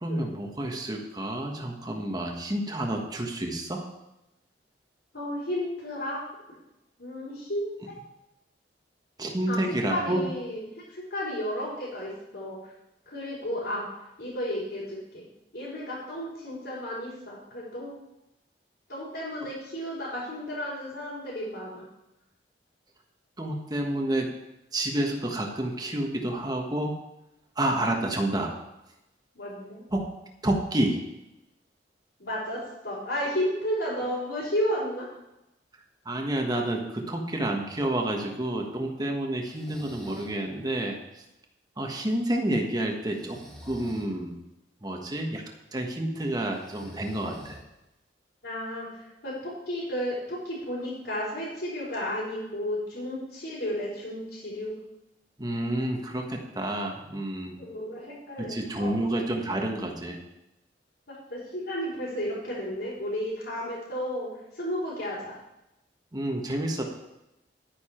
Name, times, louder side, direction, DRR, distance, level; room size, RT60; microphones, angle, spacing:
voice 1, 0.0-3.8 9.2-10.3 23.4-24.4 24.7-26.9 27.6-28.5 29.9-30.1 30.4-31.0 36.0-41.0 41.8-44.3 44.8-45.4 45.7-47.6 55.4-57.6 58.4-60.2 66.1-66.8, right 1 dB, 20° right, 2 dB, 1.3 m, -29 dB
voice 2, 5.1-6.2 7.0-7.7 9.5-9.6 9.9-10.6 10.9-12.6 13.1-13.9 14.2-15.2 15.5-17.9 18.9-21.8 29.3-29.8 32.2-35.1 48.4-54.7 57.6-58.9 61.1-64.3 64.5-65.4, equal, 65° left, -10 dB, 4.8 m, -33 dB
Breathing, 39.4-40.4 43.1-44.1 46.5-47.9, equal, 5° left, 1.8 m, -47 dB
10.5 x 9.8 x 4.5 m, 0.91 s
head